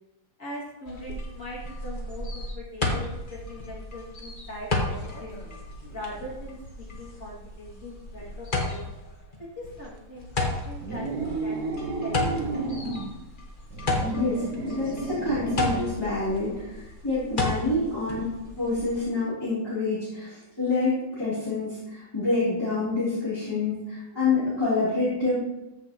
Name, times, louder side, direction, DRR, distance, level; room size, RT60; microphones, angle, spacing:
voice 1, 0.4-5.3 5.9-8.8 9.6-12.8 17.4-17.8, left 1 dB, 45° left, -5 dB, 3.0 m, -41 dB
sound 1, 0.8-19.0, left 2 dB, 30° left, 1.4 m, -33 dB
sound 2, 10.8-13.1 13.7-15.9, right 3 dB, 65° right, 1.5 m, -31 dB
voice 2, 14.1-18.2 18.6-25.4, left 3 dB, 15° left, -12 dB, 3.8 m, -27 dB
14.0 x 6.4 x 3.2 m, 0.95 s
omnidirectional pair, 1.9 m